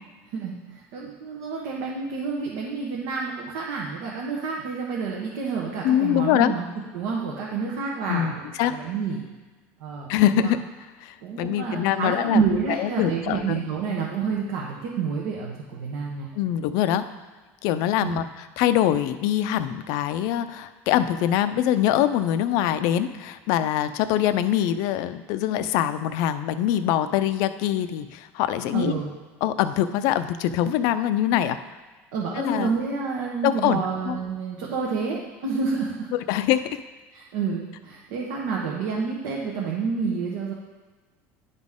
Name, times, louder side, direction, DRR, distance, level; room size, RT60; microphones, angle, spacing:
voice 1, 0.3-6.7 6.9-9.2 9.8-10.5 11.2-16.3 18.0-18.2 28.7-29.1 32.1-36.1 37.1-40.5, right 5 dB, 80° right, -3 dB, 1.2 m, -29 dB
voice 2, 5.8-6.5 8.1-8.3 8.6-8.7 10.1-10.6 11.0-12.4 12.8-13.6 16.4-17.0 17.6-18.2 18.6-29.0 29.4-31.6 32.4-32.7 33.4-34.2 36.3-36.6, left 11 dB, 65° left, 12 dB, 0.4 m, -23 dB
10.5 x 4.1 x 3.6 m, 1.3 s
cardioid pair, 140°, 7 cm